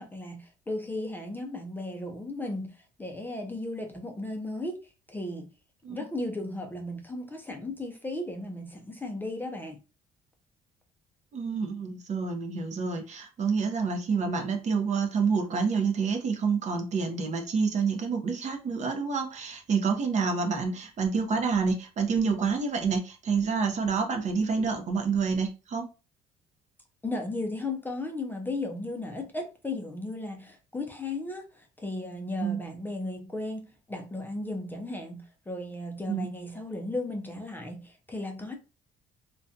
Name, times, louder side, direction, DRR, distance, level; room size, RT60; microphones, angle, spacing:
voice 1, 0.0-5.5 5.9-9.8 27.0-38.5, left 2 dB, 10° left, 0.4 m, -35 dB
voice 2, 11.3-25.9 32.4-32.6 36.1-36.3, right 5 dB, 45° right, 0.6 m, -28 dB
2.4 x 2.2 x 2.6 m
cardioid pair, 110°, 17 cm